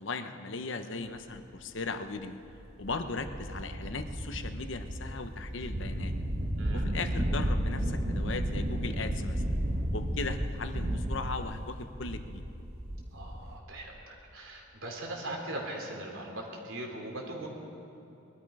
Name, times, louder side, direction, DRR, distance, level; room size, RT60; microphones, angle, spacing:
voice 1, 0.0-2.4 2.8-6.1 6.7-9.4 9.9-12.4, left 3 dB, 65° left, 8 dB, 0.9 m, -38 dB
sound 1, 1.4-1.5 2.1-2.2 2.6-13.6, equal, 50° right, 1.5 m, -33 dB
voice 2, 13.1-17.5, right 1 dB, 75° right, 1 dB, 2.8 m, -40 dB
22.0 x 13.0 x 4.9 m, 2.9 s
head